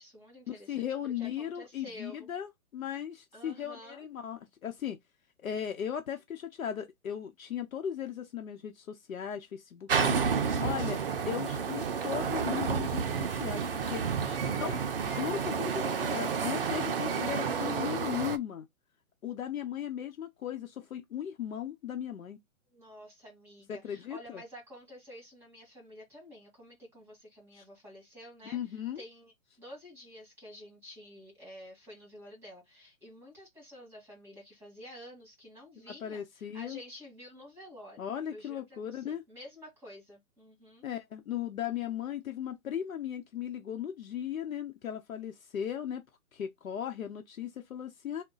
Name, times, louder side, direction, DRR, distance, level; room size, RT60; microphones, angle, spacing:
voice 1, 0.0-2.3 3.3-4.0 14.2-14.8 22.7-40.9, equal, 5° right, 1.5 m, -50 dB
voice 2, 0.7-5.0 5.4-10.2 10.6-14.0 14.6-14.8 15.0-18.7 19.2-22.4 23.7-24.4 27.5-27.6 28.5-29.0 36.0-36.8 38.0-39.2 40.8-46.0 46.3-48.2, left 9 dB, 65° left, 0.9 m, -37 dB
sound 1, 9.9-18.4, right 6 dB, 45° right, 0.5 m, -30 dB
3.6 x 2.2 x 3.9 m
hypercardioid pair, 155°, 43 cm